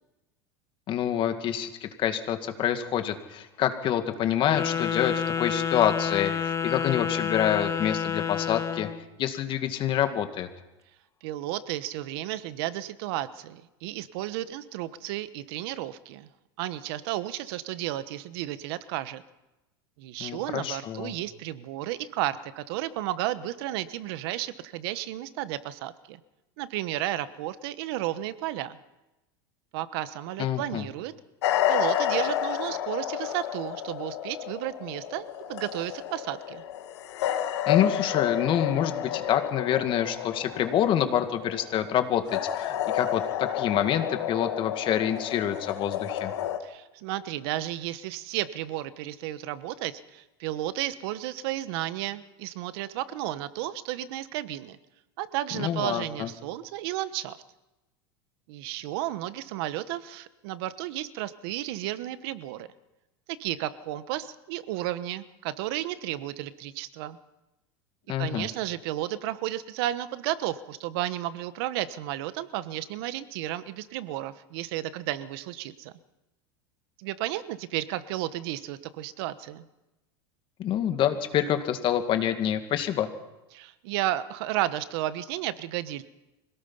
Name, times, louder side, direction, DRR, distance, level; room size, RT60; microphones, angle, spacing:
voice 1, 0.9-8.9 9.2-10.5 20.2-21.1 30.4-30.9 37.7-46.3 55.5-56.3 68.1-68.5 80.6-83.1, left 10 dB, 40° left, 7 dB, 2.1 m, -27 dB
Wind instrument woodwind instrument, 4.4-9.0, left 8 dB, 20° left, 1.2 m, -29 dB
voice 2, 11.2-16.3 16.6-19.2 20.0-26.2 26.6-28.8 29.7-31.1 31.7-36.6 46.6-54.8 55.2-57.4 58.5-62.7 63.4-67.2 68.2-75.9 77.0-79.7 83.5-86.0, right 14 dB, 65° right, 14 dB, 1.2 m, -33 dB
sound 1, 31.4-46.6, left 10 dB, 90° left, 1.9 m, -30 dB
25.5 x 18.0 x 5.7 m, 0.98 s
supercardioid pair, 130°, 14 cm